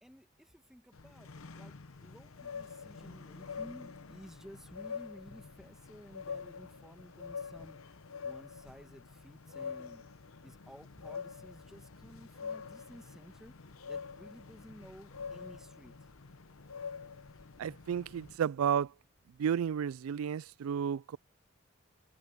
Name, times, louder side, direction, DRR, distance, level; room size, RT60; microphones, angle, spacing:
voice 1, 0.0-7.8 8.2-10.0 10.4-13.5 13.8-15.9, equal, ahead, 1.2 m, -54 dB
sound 1, 0.9-18.4, left 5 dB, 80° left, 0.9 m, -46 dB
sound 2, 17.4-19.8, equal, 55° left, 6.1 m, -73 dB
voice 2, 17.6-18.9 19.4-21.2, right 8 dB, 85° right, 0.3 m, -32 dB
head